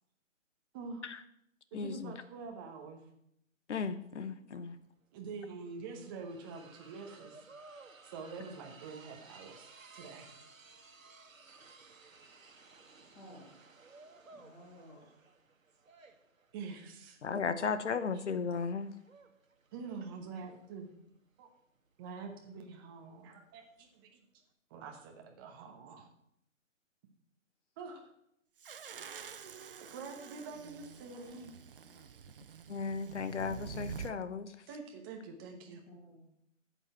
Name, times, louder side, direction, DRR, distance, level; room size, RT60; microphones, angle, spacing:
voice 1, 0.7-1.1 1.7-3.0 5.1-7.4 8.0-10.3 11.3-11.4 16.5-17.2 19.7-20.9 21.4-21.5 22.0-24.2 24.7-26.1 27.8-28.0 29.8-31.5 34.7-35.8, right 4 dB, 15° right, 2 dB, 1.0 m, -46 dB
voice 2, 1.7-2.2 3.7-4.8 17.2-18.9 32.7-34.7, left 5 dB, 60° left, 12 dB, 1.1 m, -36 dB
sound 1, 4.8-4.9 5.2-24.0, right 4 dB, 85° right, 1.5 m, -58 dB
voice 3, 13.1-13.6 14.3-15.2 31.1-31.3 31.8-32.1 35.6-36.4, equal, 15° left, -2 dB, 1.8 m, -56 dB
sound 2, 28.6-34.1, right 7 dB, 45° right, 0.6 m, -47 dB
12.5 x 8.2 x 4.3 m, 0.74 s
figure-of-eight pair, 150°, 40 cm